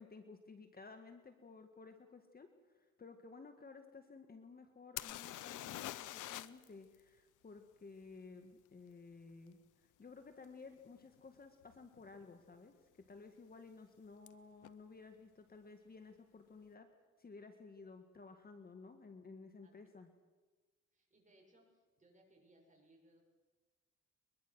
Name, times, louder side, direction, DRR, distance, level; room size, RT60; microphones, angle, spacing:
voice 1, 0.0-16.9 17.2-20.1, left 4 dB, 30° left, 6 dB, 1.9 m, -55 dB
sound 1, 5.0-6.7 6.9-7.0 10.4-10.5 11.2-11.4 11.6-12.2 14.3-14.4 14.6-14.7, left 14 dB, 85° left, 0.8 m, -45 dB
voice 2, 20.9-23.2, right 1 dB, 25° right, 0 dB, 7.6 m, -68 dB
23.0 x 22.0 x 6.4 m, 1.3 s
cardioid pair, 90°, 30 cm